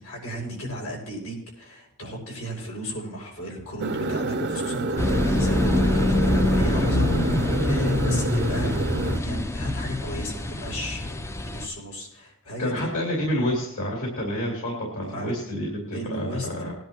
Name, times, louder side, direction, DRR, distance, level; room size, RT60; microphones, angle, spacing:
voice 1, 0.0-11.2 11.4-12.9 15.0-15.5 15.9-16.5, equal, 90° left, -1 dB, 5.9 m, -35 dB
sound 1, 3.8-9.2, right 2 dB, 50° right, 0.7 m, -28 dB
sound 2, 5.0-11.7, left 1 dB, 10° left, 0.5 m, -24 dB
voice 2, 12.6-16.7, equal, 65° left, -2 dB, 3.0 m, -28 dB
20.5 x 10.5 x 3.0 m, 0.76 s
head